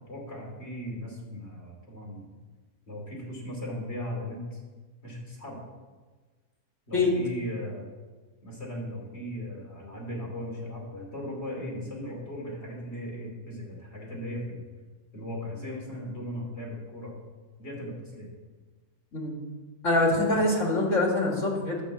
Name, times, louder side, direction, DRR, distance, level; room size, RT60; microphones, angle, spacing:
voice 1, 0.1-2.3 2.9-4.6 5.0-5.6 6.9-7.8 8.4-14.6 15.1-17.1 17.6-18.3, equal, 55° left, -3 dB, 3.3 m, -37 dB
voice 2, 19.8-21.8, left 2 dB, 85° left, -1 dB, 2.6 m, -24 dB
10.5 x 6.0 x 8.1 m, 1.4 s
omnidirectional pair, 1.3 m